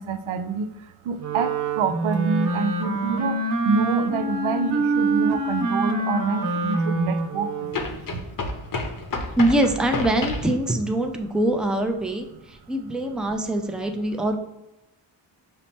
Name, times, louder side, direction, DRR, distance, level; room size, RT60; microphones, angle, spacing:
voice 1, 0.0-8.3, right 5 dB, 90° right, 9 dB, 0.5 m, -27 dB
Wind instrument woodwind instrument, 1.2-7.9, right 2 dB, 40° right, 0.7 m, -25 dB
sound 1, 5.3-5.4 7.7-10.6, left 3 dB, 45° left, 0.7 m, -30 dB
voice 2, 9.4-14.4, right 1 dB, ahead, 4 dB, 0.5 m, -24 dB
5.6 x 2.1 x 4.2 m, 0.97 s
cardioid pair, 75°, 47 cm